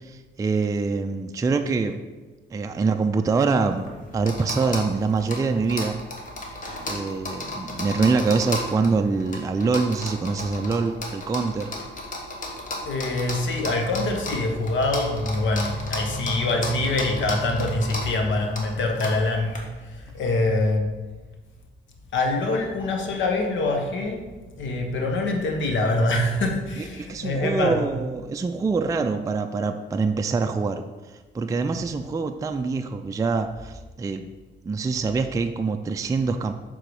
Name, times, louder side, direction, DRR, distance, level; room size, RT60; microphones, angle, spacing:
voice 1, 0.0-2.0 2.5-6.0 6.9-11.7 26.8-30.8 31.3-34.3 34.6-36.5, right 4 dB, 15° right, 6 dB, 0.3 m, -25 dB
sound 1, 3.5-19.6, left 1 dB, 40° left, 1.4 m, -35 dB
voice 2, 12.8-20.9 22.1-24.2 24.6-27.9 35.1-35.2, left 2 dB, 70° left, 3 dB, 1.1 m, -25 dB
6.5 x 3.8 x 4.7 m, 1.3 s
cardioid pair, 90°, 20 cm